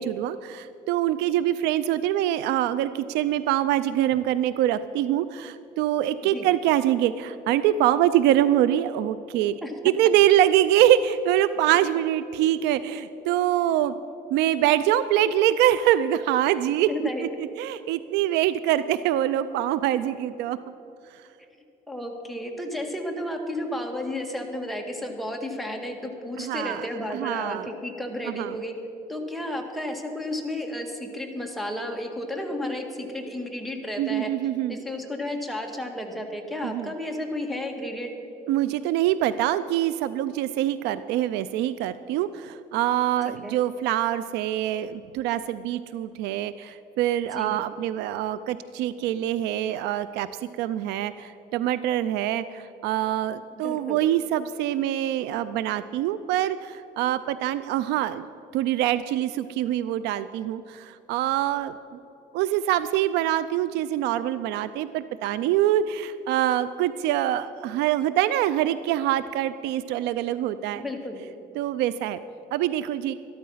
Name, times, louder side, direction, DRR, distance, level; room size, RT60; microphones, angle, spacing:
voice 1, 0.0-9.5 9.8-13.9 14.3-17.1 17.4-20.6 26.4-27.7 28.3-28.5 34.0-34.8 36.6-36.9 38.5-50.3 50.6-58.2 58.5-62.0 62.3-70.8 71.6-72.2 72.5-73.1, right 12 dB, 90° right, 15 dB, 0.4 m, -24 dB
voice 2, 16.9-17.3 21.9-28.8 29.1-34.3 34.7-38.1 43.4-43.6 47.3-47.6 53.5-54.0 70.8-71.2, left 1 dB, ahead, 1 dB, 1.7 m, -32 dB
13.0 x 12.5 x 5.6 m, 2.9 s
cardioid pair, 110°, 17 cm